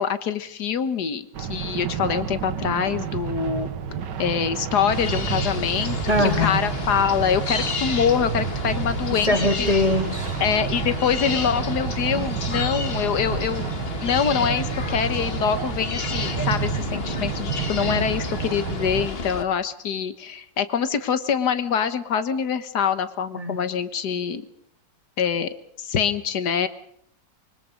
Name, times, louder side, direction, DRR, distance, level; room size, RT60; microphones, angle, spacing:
voice 1, 0.0-3.7 4.2-9.7 10.4-24.5 25.2-26.7, left 7 dB, 65° left, 11 dB, 1.8 m, -25 dB
sound 1, 1.3-19.1, right 8 dB, 80° right, 1.7 m, -30 dB
sound 2, 4.9-19.4, left 4 dB, 35° left, 1.4 m, -31 dB
voice 2, 6.1-6.7 9.3-10.4 17.8-18.1 23.3-23.6, left 1 dB, 20° right, 3 dB, 3.1 m, -23 dB
25.0 x 23.5 x 5.2 m, 0.68 s
omnidirectional pair, 1.9 m